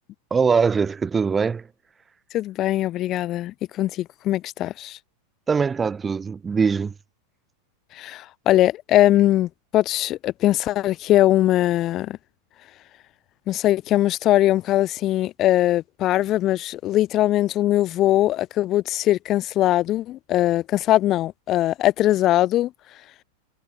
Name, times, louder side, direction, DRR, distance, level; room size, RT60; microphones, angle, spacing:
voice 1, 0.3-1.6 5.5-6.9, right 5 dB, 15° right, 0.6 m, -22 dB
voice 2, 2.3-5.0 7.9-12.2 13.5-22.7, left 14 dB, 35° left, 0.3 m, -21 dB
figure-of-eight pair, 90°, 0 cm